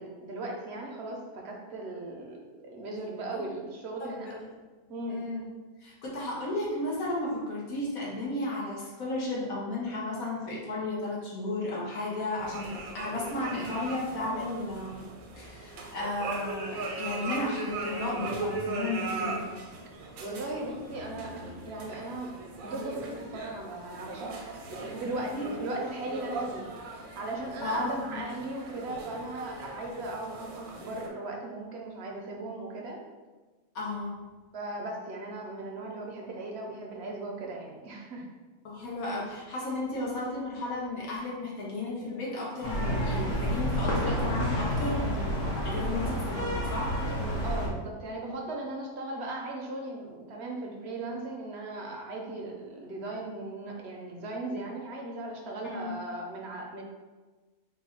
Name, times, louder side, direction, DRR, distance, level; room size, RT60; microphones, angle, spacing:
voice 1, 0.0-2.4 2.6-4.4 4.9-5.2 20.2-22.4 22.6-33.0 34.5-38.3 47.2-56.8, right 2 dB, 60° right, 0 dB, 0.8 m, -38 dB
voice 2, 4.0-4.3 5.1-5.4 5.8-15.0 15.4-19.5 25.3-25.5 27.6-28.2 33.7-34.2 38.6-45.4 45.6-46.9 55.8-56.0, left 2 dB, 85° left, -5 dB, 1.4 m, -34 dB
sound 1, 12.4-31.1, right 3 dB, 80° right, 1.1 m, -39 dB
sound 2, 42.6-47.7, equal, 65° left, 1.1 m, -29 dB
3.9 x 2.2 x 4.3 m, 1.3 s
omnidirectional pair, 1.4 m